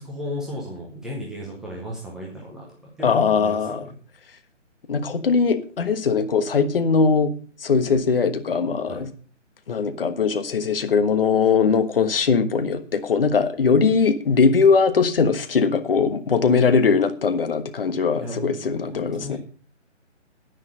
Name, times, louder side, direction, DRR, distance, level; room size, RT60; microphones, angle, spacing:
voice 1, 0.0-2.6 3.0-3.9 8.9-9.0 18.1-19.4, left 1 dB, ahead, 0.7 m, -35 dB
voice 2, 3.0-3.8 4.9-7.3 7.6-9.1 9.7-19.4, left 5 dB, 50° left, 1.5 m, -20 dB
10.5 x 9.7 x 5.5 m
figure-of-eight pair, 145°, 38 cm